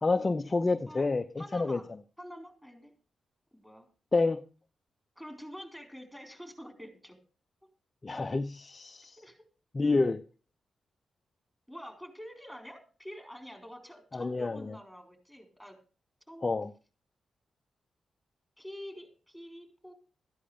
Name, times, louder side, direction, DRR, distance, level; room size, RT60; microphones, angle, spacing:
voice 1, 0.0-1.8 4.1-4.4 8.0-9.2 9.7-10.2 14.1-14.8 16.4-16.7, left 3 dB, 30° left, 0.7 m, -28 dB
voice 2, 1.4-1.9 2.2-2.9 3.5-3.9 5.2-7.2 9.2-9.4 11.7-15.8 16.3-16.5 18.6-19.9, equal, 5° right, 4.2 m, -47 dB
14.0 x 10.0 x 5.0 m
cardioid pair, 85°, 0 cm